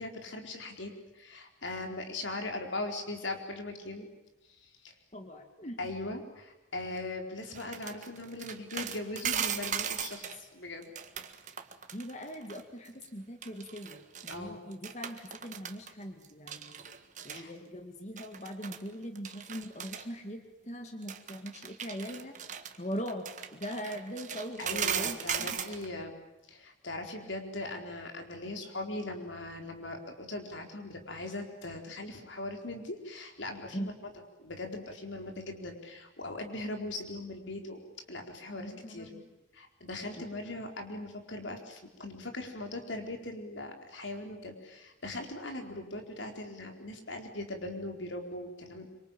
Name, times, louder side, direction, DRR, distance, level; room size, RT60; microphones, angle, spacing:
voice 1, 0.0-4.1 4.6-4.9 5.8-10.9 14.3-14.6 17.3-17.5 24.6-33.9 34.4-37.8 38.1-39.1 39.5-48.9, left 2 dB, 80° left, 3 dB, 4.4 m, -40 dB
voice 2, 5.1-5.8 11.9-16.9 17.2-22.3 22.8-25.6 33.7-33.9 38.6-39.2 40.2-40.3, equal, 35° left, 5 dB, 2.0 m, -41 dB
sound 1, 7.5-10.4 10.8-12.6 12.9-13.1 13.4-14.4 14.7-15.9 16.2-17.4 18.2-18.9 19.2-20.1 21.0-25.9, right 8 dB, 40° right, 1.6 m, -37 dB
26.0 x 25.0 x 8.9 m, 0.98 s
head